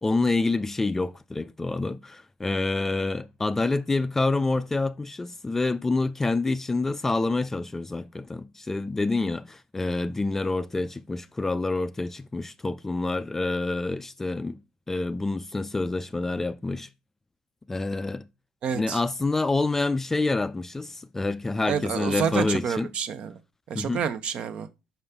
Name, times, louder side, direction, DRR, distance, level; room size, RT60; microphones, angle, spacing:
voice 1, 0.0-14.6 14.9-16.9 17.7-18.2 18.7-22.9 23.7-24.0, left 3 dB, 15° left, 0.3 m, -27 dB
voice 2, 18.6-19.0 21.7-23.3 23.7-24.7, right 7 dB, 55° right, 0.7 m, -28 dB
5.8 x 5.3 x 3.4 m
supercardioid pair, 95°, 2 cm